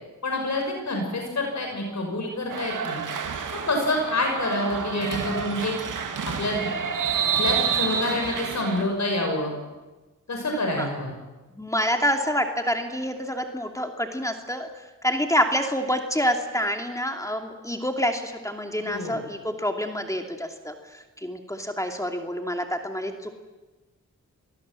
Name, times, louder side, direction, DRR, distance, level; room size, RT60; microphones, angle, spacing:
voice 1, 0.2-3.0 3.5-5.8 6.4-6.7 7.4-9.5 10.3-11.1 18.8-19.2, left 1 dB, 60° left, 2 dB, 6.1 m, -27 dB
sound 1, 2.5-8.8, right 7 dB, 80° right, 2.3 m, -29 dB
voice 2, 11.5-14.7 15.0-23.3, equal, 10° left, 4 dB, 2.6 m, -27 dB
29.0 x 19.0 x 7.7 m, 1.2 s
cardioid pair, 65°, 32 cm